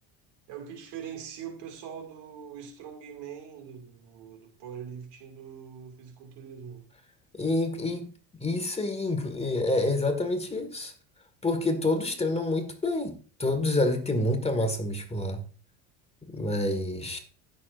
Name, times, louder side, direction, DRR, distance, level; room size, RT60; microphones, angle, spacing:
voice 1, 0.5-6.9, right 8 dB, 70° right, 2.3 m, -42 dB
voice 2, 7.3-8.1 8.4-10.9 11.4-13.1 13.4-15.4 16.3-17.2, left 2 dB, 15° left, 1.8 m, -27 dB
16.0 x 6.7 x 2.5 m
supercardioid pair, 95°, 43 cm